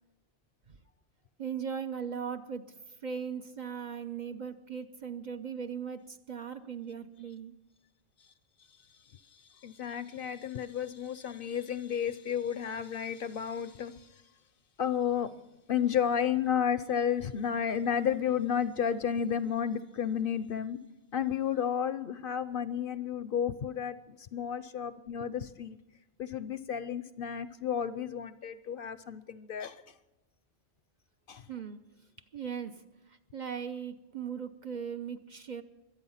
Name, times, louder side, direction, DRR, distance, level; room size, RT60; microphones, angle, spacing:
voice 1, 1.4-7.5 31.5-31.9 32.3-35.6, right 7 dB, 45° right, 8 dB, 0.7 m, -39 dB
voice 2, 9.6-14.0 14.8-15.3 15.7-20.8 21.1-25.8 26.2-29.8 31.3-31.4, left 8 dB, 60° left, 14 dB, 0.7 m, -32 dB
24.0 x 9.0 x 5.7 m, 0.98 s
omnidirectional pair, 1.2 m